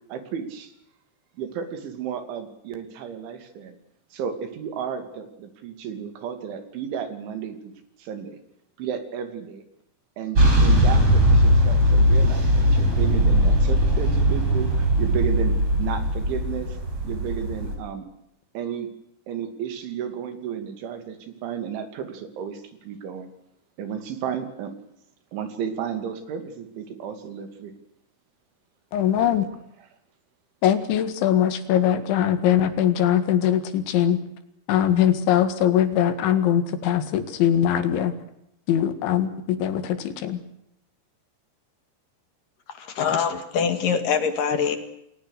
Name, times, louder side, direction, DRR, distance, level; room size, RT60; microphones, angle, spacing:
voice 1, 0.1-0.7 1.4-3.8 4.1-7.7 8.0-8.4 8.8-9.6 10.2-16.8 17.0-18.1 18.5-18.9 19.3-23.3 23.8-24.7 25.3-27.7 29.2-29.4, right 8 dB, 85° right, 8 dB, 5.0 m, -33 dB
sound 1, 10.4-17.7, equal, 30° right, 5.8 m, -19 dB
voice 2, 28.9-29.5 30.6-34.2 34.7-38.1 38.7-40.4, left 10 dB, 80° left, 10 dB, 4.2 m, -21 dB
voice 3, 42.8-44.8, left 6 dB, 55° left, 9 dB, 3.1 m, -24 dB
29.5 x 20.0 x 6.7 m, 0.79 s
omnidirectional pair, 5.3 m